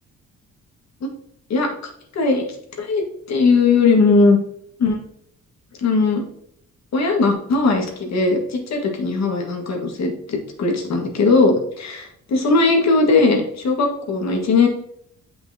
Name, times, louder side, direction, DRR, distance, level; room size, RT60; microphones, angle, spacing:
voice 1, 2.1-2.4 2.8-4.4 4.8-5.0 5.8-6.2 6.9-14.7, left 3 dB, 60° left, 2 dB, 1.7 m, -18 dB
7.1 x 5.4 x 2.8 m, 0.70 s
cardioid pair, 90°, 30 cm